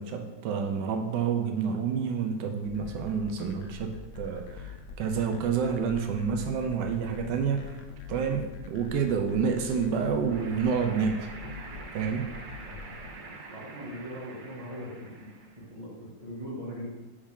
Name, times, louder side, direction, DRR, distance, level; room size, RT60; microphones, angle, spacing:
voice 1, 0.0-7.8 8.1-11.3 11.9-12.3, right 6 dB, 90° right, 5 dB, 1.3 m, -29 dB
sound 1, 2.6-13.1, left 5 dB, 75° left, 1.3 m, -44 dB
sound 2, 10.2-15.6, right 3 dB, 65° right, 0.4 m, -45 dB
voice 2, 13.5-15.3 15.7-16.9, equal, 20° right, -6 dB, 1.9 m, -40 dB
7.2 x 4.9 x 3.6 m, 1.1 s
omnidirectional pair, 1.9 m